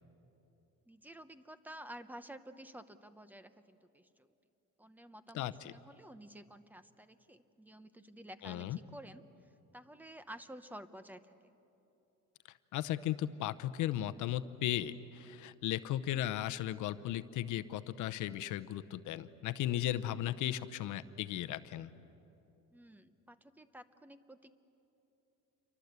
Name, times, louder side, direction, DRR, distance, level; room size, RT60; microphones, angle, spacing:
voice 1, 0.9-4.3 4.8-9.2 9.7-11.3 22.7-24.5, right 1 dB, 5° right, 12 dB, 0.7 m, -51 dB
voice 2, 5.3-5.7 8.4-8.8 12.7-21.9, left 12 dB, 65° left, 11 dB, 0.8 m, -36 dB
28.5 x 24.0 x 8.1 m, 2.9 s
cardioid pair, 155°, 33 cm